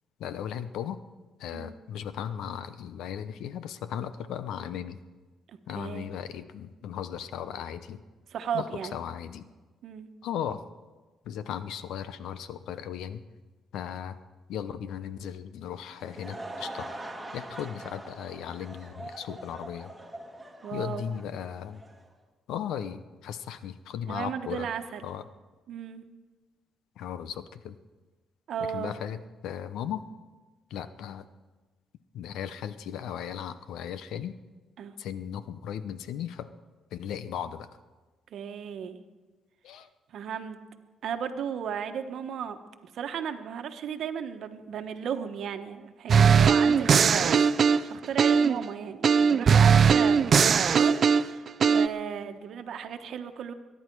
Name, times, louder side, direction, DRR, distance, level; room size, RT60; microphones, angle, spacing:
voice 1, 0.2-1.0 1.4-5.0 5.7-8.0 8.5-9.5 10.2-10.6 11.2-13.2 13.7-14.2 14.5-16.9 17.3-19.9 20.7-21.8 22.5-24.7 25.0-25.2 27.0-27.8 28.7-30.1 30.7-31.2 32.1-34.3 35.0-36.5 36.9-37.7 39.6-39.9, left 9 dB, 85° left, 13 dB, 0.8 m, -36 dB
voice 2, 5.5-6.1 8.3-9.0 9.8-10.1 20.6-21.0 24.1-25.1 25.7-26.0 28.5-28.9 34.8-34.9 38.3-39.0 40.1-40.6 41.0-42.6 42.9-53.5, right 8 dB, 70° right, 8 dB, 1.1 m, -35 dB
Laughter / Crowd, 15.8-22.1, right 1 dB, 10° right, 2.0 m, -43 dB
sound 1, 46.1-48.6 49.0-51.9, right 6 dB, 50° right, 0.5 m, -20 dB
22.5 x 10.5 x 4.6 m, 1.3 s
cardioid pair, 90°, 0 cm